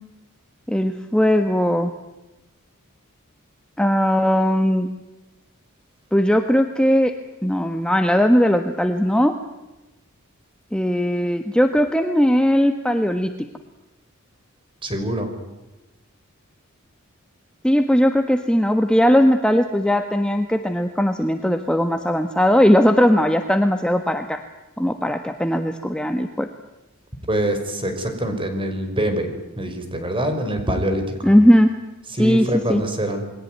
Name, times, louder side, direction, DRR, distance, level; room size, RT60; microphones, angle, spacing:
voice 1, 0.7-1.9 3.8-4.9 6.1-7.1 7.4-9.4 10.7-13.3 17.6-24.4 24.8-26.5 31.2-31.7 32.2-32.8, equal, 5° left, 6 dB, 1.3 m, -18 dB
voice 2, 14.8-15.3 27.3-31.3 32.1-33.2, right 1 dB, 25° right, 7 dB, 5.8 m, -24 dB
29.0 x 21.5 x 9.5 m, 1.0 s
head